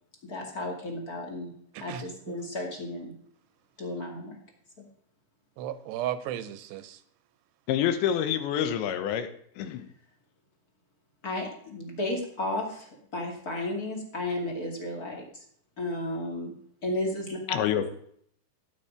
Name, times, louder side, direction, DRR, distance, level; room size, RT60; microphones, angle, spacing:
voice 1, 0.2-1.5 1.8-3.1 3.8-4.4 4.8-4.9 11.2-15.4 15.8-16.5 16.8-17.6, left 1 dB, 25° left, 1 dB, 2.2 m, -33 dB
voice 2, 1.7-2.3 5.6-7.0, right 11 dB, 80° right, 12 dB, 2.9 m, -35 dB
voice 3, 7.7-9.3 9.6-9.9 17.5-17.9, left 9 dB, 90° left, 9 dB, 3.5 m, -27 dB
16.0 x 8.9 x 5.1 m, 0.65 s
omnidirectional pair, 5.1 m